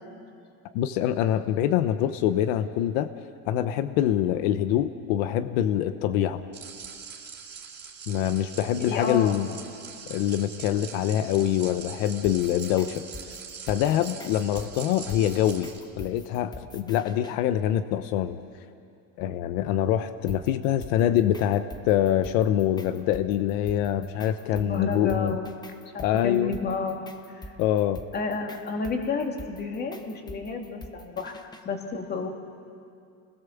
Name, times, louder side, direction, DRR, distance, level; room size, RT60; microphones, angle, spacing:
voice 1, 0.7-3.1 3.5-6.4 8.1-9.5 10.1-13.0 13.7-18.4 19.2-25.4 26.0-26.5 27.6-28.0, left 11 dB, 85° left, 11 dB, 1.1 m, -25 dB
sound 1, 6.5-15.8, right 6 dB, 25° right, 2.9 m, -43 dB
voice 2, 8.8-9.3 24.5-25.5 25.9-27.0 27.3-27.4 28.1-31.4 31.6-32.3, left 4 dB, 25° left, 3 dB, 2.3 m, -31 dB
sound 2, 12.1-17.4 20.3-31.6, left 1 dB, 10° left, 1.0 m, -45 dB
29.5 x 20.5 x 7.2 m, 2.4 s
cardioid pair, 160°, 38 cm